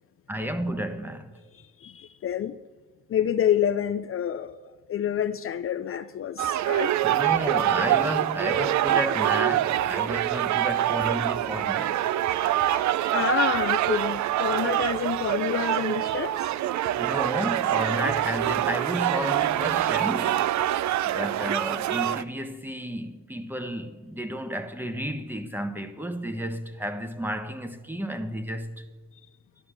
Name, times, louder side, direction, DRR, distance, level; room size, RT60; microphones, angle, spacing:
voice 1, 0.3-1.3 7.0-12.0 17.0-20.5 21.0-28.9, equal, 5° right, 1.3 m, -32 dB
voice 2, 1.8-2.6 3.1-4.6 4.9-6.9 12.7-12.8 13.1-16.5, left 9 dB, 45° left, 0.5 m, -28 dB
sound 1, 6.4-22.2, right 13 dB, 70° right, 0.5 m, -25 dB
12.0 x 11.0 x 7.7 m
cardioid pair, 90°, 30 cm